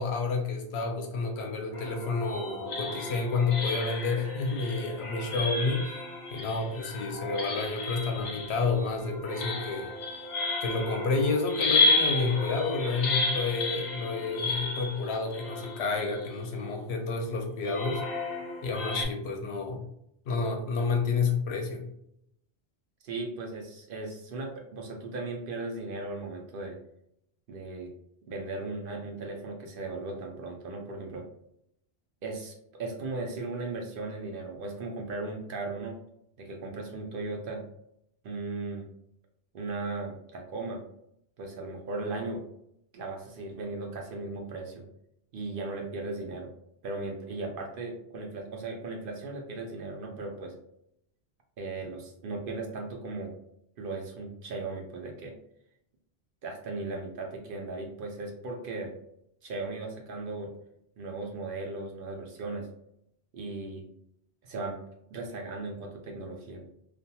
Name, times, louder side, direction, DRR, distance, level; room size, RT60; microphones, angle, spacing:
voice 1, 0.0-5.9 6.3-9.9 10.6-18.0 18.6-19.9 20.3-21.9, left 4 dB, 85° left, 3 dB, 0.9 m, -30 dB
sound 1, 1.7-16.6 17.6-19.0, left 3 dB, 50° left, 0.6 m, -32 dB
voice 2, 23.0-26.8 27.5-27.9 28.3-31.3 32.2-36.0 36.4-37.6 38.2-38.9 39.5-40.8 41.4-42.4 42.9-44.8 45.3-46.5 46.8-50.5 51.6-53.3 53.8-55.3 56.4-58.9 59.4-60.5 61.0-62.7 63.3-63.8 64.4-64.8 65.1-66.7, right 3 dB, 60° right, 2 dB, 0.7 m, -37 dB
2.7 x 2.4 x 2.2 m, 0.75 s
omnidirectional pair, 1.1 m